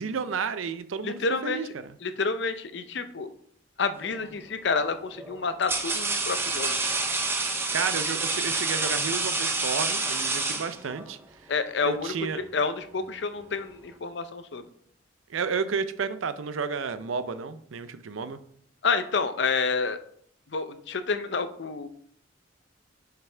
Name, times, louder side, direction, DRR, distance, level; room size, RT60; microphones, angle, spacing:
voice 1, 0.0-2.0 7.4-11.5 11.8-12.4 15.3-18.4, right 5 dB, 90° right, 12 dB, 0.5 m, -32 dB
voice 2, 1.0-1.6 2.0-3.3 3.8-6.8 11.5-14.6 18.8-20.0 20.5-21.9, left 4 dB, 60° left, 11 dB, 0.6 m, -29 dB
sound 1, 4.0-4.4 5.2-11.1, right 3 dB, 10° right, 0.5 m, -28 dB
7.1 x 5.7 x 3.3 m, 0.63 s
head